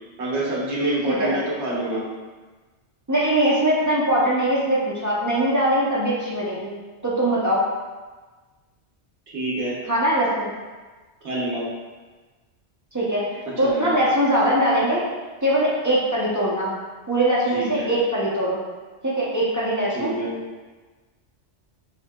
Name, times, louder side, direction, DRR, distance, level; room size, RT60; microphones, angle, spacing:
voice 1, 0.2-2.0 9.3-9.8 11.2-11.6 13.6-14.0 17.5-17.9 19.9-20.3, right 1 dB, 75° right, -5 dB, 1.1 m, -27 dB
voice 2, 3.1-6.7 7.0-7.6 9.9-10.5 12.9-15.0 15.4-16.8 17.1-18.6 19.0-20.1, right 1 dB, 25° right, -7 dB, 0.4 m, -21 dB
4.7 x 2.7 x 2.2 m, 1.3 s
omnidirectional pair, 1.2 m